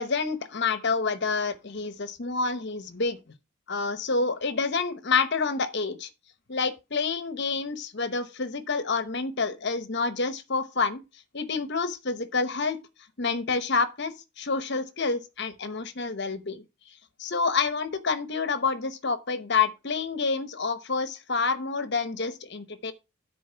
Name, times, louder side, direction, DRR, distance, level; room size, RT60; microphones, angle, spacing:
voice 1, 0.0-3.2 3.7-6.1 6.5-11.0 11.3-12.8 13.2-16.6 17.2-22.9, left 4 dB, 55° left, 0.9 m, -28 dB
10.0 x 4.4 x 5.6 m
head